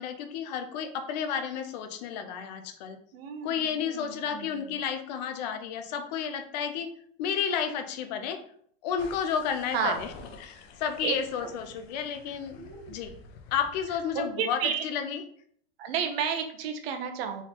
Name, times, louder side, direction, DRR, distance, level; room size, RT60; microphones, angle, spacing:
voice 1, 0.0-3.0 3.4-6.9 7.2-8.4 8.8-10.1 10.4-12.6 12.9-13.1 13.5-15.2, left 7 dB, 45° left, 7 dB, 0.5 m, -31 dB
voice 2, 3.1-4.8 9.7-10.0 11.0-11.2 11.4-11.5 12.6-13.0 14.1-14.9 15.8-17.4, right 7 dB, 70° right, 6 dB, 0.9 m, -32 dB
sound 1, 9.0-14.2, left 4 dB, 80° left, 0.9 m, -50 dB
4.2 x 4.0 x 2.9 m, 0.62 s
supercardioid pair, 180°, 31 cm